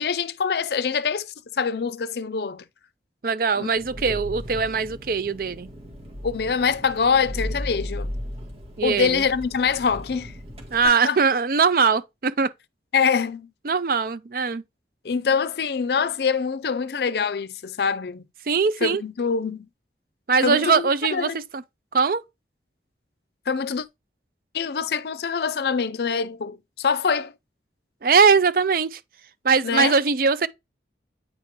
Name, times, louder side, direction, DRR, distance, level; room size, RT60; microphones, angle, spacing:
voice 1, 0.0-2.6 3.6-3.7 4.1-4.2 6.2-8.1 8.8-10.3 10.8-11.2 12.9-13.5 15.0-18.2 18.8-19.7 20.4-21.4 23.5-23.9 24.5-27.3 29.6-29.9, left 6 dB, 65° left, 0.4 m, -24 dB
voice 2, 3.2-5.7 8.8-9.2 10.7-12.5 13.6-14.6 18.5-19.0 20.3-21.6 21.9-22.2 28.0-29.0 29.4-30.5, right 5 dB, 50° right, 0.5 m, -21 dB
Engine, 3.8-10.8, left 1 dB, 35° right, 1.6 m, -36 dB
8.7 x 3.7 x 3.0 m
head